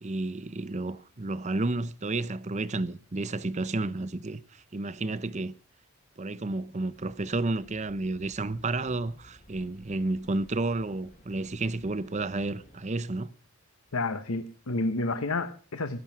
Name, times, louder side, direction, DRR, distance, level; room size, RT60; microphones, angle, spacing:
voice 1, 0.0-5.5 6.2-13.3, right 2 dB, 30° right, 0.7 m, -31 dB
sound 1, 6.9-12.8, equal, 35° left, 3.1 m, -56 dB
voice 2, 13.9-16.0, left 2 dB, 70° left, 1.0 m, -30 dB
17.5 x 12.5 x 6.0 m
head